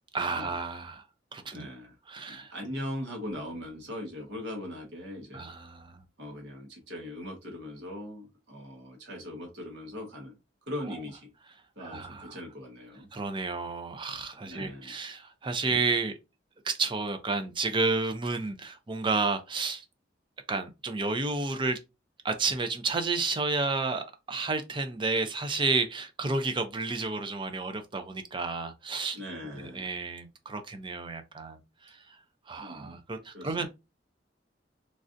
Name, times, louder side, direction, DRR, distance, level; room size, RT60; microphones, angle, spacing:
voice 1, 0.1-1.0 1.3-1.7 2.1-2.5 5.3-6.0 11.8-12.4 13.1-16.2 16.6-19.8 20.5-21.8 22.2-29.2 29.5-32.0 32.5-33.7, right 3 dB, 25° right, 0.4 m, -31 dB
voice 2, 1.5-2.0 2.3-5.5 6.2-10.3 10.7-11.3 11.8-13.1 14.5-14.9 29.1-29.9 32.6-33.0 33.3-33.7, left 1 dB, 70° right, 1.2 m, -40 dB
3.2 x 2.5 x 2.6 m
head